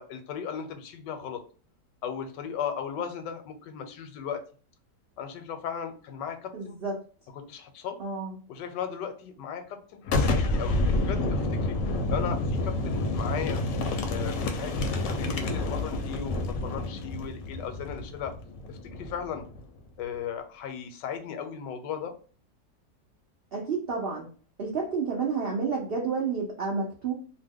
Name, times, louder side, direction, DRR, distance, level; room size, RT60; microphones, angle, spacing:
voice 1, 0.0-1.4 2.0-4.4 5.2-6.8 7.3-8.0 8.5-11.8 12.1-13.6 14.1-18.3 18.7-19.4 20.0-22.1, left 7 dB, 85° left, 6 dB, 1.2 m, -36 dB
voice 2, 6.5-7.0 8.0-8.4 23.5-24.3 24.6-27.1, right 5 dB, 90° right, -1 dB, 0.5 m, -30 dB
Boom, 10.0-19.6, left 2 dB, 65° left, 0.8 m, -29 dB
2.8 x 2.1 x 3.5 m, 0.39 s
omnidirectional pair, 1.9 m